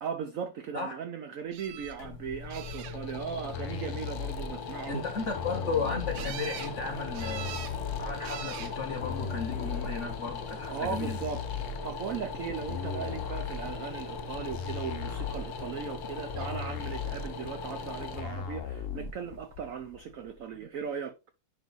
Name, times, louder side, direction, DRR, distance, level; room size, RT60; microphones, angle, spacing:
voice 1, 0.0-5.0 10.7-11.4 11.8-21.1, right 7 dB, 60° right, 0.9 m, -38 dB
sound 1, 1.5-2.0 2.5-3.2 6.1-6.7 7.1-7.8 8.2-8.7 9.7-10.1 16.4-16.5 16.8-16.9, right 11 dB, 85° right, 1.4 m, -42 dB
sound 2, 1.6-20.6, left 4 dB, 90° left, 1.9 m, -40 dB
sound 3, 3.4-19.4, left 7 dB, 70° left, 0.5 m, -37 dB
voice 2, 4.9-7.5 8.0-11.2, left 4 dB, 45° left, 1.2 m, -34 dB
9.9 x 3.4 x 3.9 m
omnidirectional pair, 2.0 m